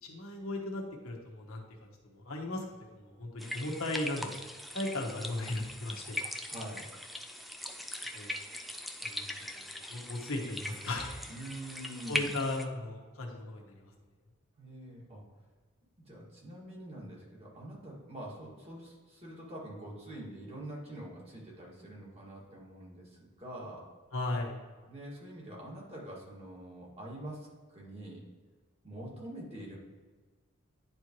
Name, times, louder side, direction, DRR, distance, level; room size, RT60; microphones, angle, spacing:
voice 1, 0.0-1.6 2.0-2.6 2.9-4.4 4.7-6.2 8.1-8.3 9.0-9.6 9.9-11.1 12.1-13.9 24.1-24.6, left 2 dB, 85° left, 0 dB, 1.3 m, -36 dB
sound 1, 3.4-12.6, left 1 dB, ahead, 0.3 m, -40 dB
voice 2, 6.5-6.8 11.3-12.3 14.6-15.2 16.1-23.9 24.9-28.2 28.8-29.8, right 1 dB, 30° right, -5 dB, 2.1 m, -45 dB
10.0 x 4.5 x 3.1 m, 1.4 s
head